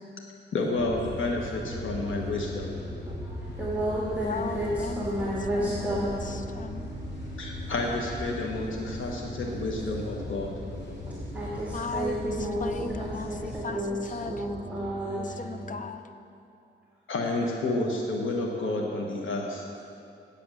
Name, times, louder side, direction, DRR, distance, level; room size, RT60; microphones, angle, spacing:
voice 1, 0.5-2.8 7.4-10.5 17.1-19.7, left 2 dB, 90° left, 0 dB, 1.2 m, -30 dB
sound 1, 0.7-13.6, left 2 dB, 65° left, 2.3 m, -40 dB
sound 2, 1.6-15.8, right 3 dB, 25° right, 0.9 m, -42 dB
voice 2, 3.2-6.1 11.3-15.4, right 1 dB, 5° right, -6 dB, 1.9 m, -31 dB
voice 3, 4.1-6.9 11.7-14.5 15.2-16.0, left 4 dB, 40° left, 8 dB, 0.6 m, -37 dB
8.5 x 8.4 x 6.6 m, 2.5 s
cardioid pair, 80°, 20 cm